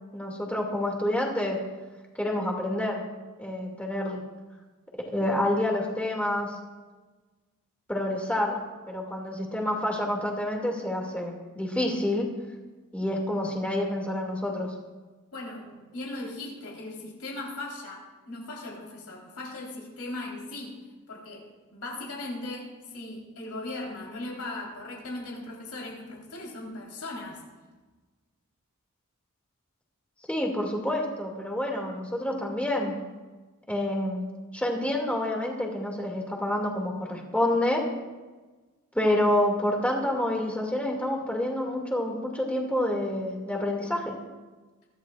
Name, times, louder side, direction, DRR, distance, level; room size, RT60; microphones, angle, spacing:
voice 1, 0.1-1.6 2.2-3.0 3.4-4.2 5.0-6.6 7.9-8.6 8.9-12.3 12.9-14.7 30.3-33.0 33.7-34.2 34.5-37.8 38.9-44.1, left 1 dB, 5° left, -1 dB, 2.2 m, -28 dB
voice 2, 15.3-20.8 21.1-27.4, left 2 dB, 85° left, -3 dB, 3.8 m, -38 dB
23.0 x 13.0 x 2.4 m, 1.3 s
head